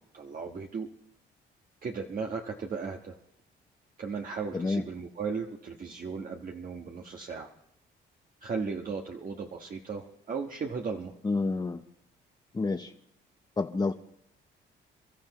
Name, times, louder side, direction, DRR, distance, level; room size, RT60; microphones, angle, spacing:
voice 1, 0.1-0.9 1.8-3.2 4.0-7.5 8.4-11.1, right 5 dB, 45° right, 2 dB, 1.4 m, -36 dB
voice 2, 4.5-4.8 11.2-11.8 12.5-12.9 13.6-13.9, left 3 dB, 20° left, 6 dB, 0.8 m, -29 dB
29.5 x 13.5 x 3.1 m, 0.73 s
cardioid pair, 90°, 20 cm